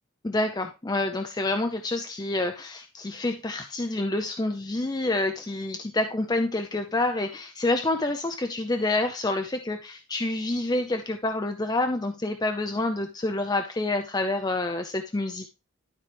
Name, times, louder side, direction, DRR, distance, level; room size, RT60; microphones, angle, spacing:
voice 1, 0.2-15.5, left 2 dB, 15° left, 6 dB, 0.5 m, -28 dB
12.0 x 4.7 x 3.3 m, 0.30 s
head